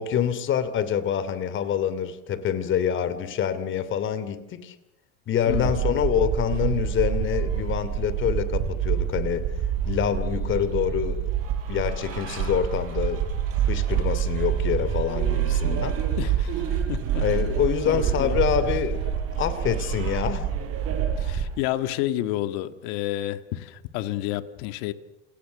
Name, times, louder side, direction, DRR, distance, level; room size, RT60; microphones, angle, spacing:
voice 1, 0.0-4.7 5.3-9.5 9.8-11.3 11.7-13.3 13.6-16.0 17.2-20.5, left 8 dB, 35° left, 2.9 m, -26 dB
voice 2, 5.5-5.8 16.2-17.2 17.9-18.4 21.2-24.9, left 14 dB, 55° left, 1.9 m, -30 dB
sound 1, 5.5-21.6, right 8 dB, 40° right, 5.3 m, -27 dB
29.0 x 28.0 x 6.6 m
supercardioid pair, 135°, 35 cm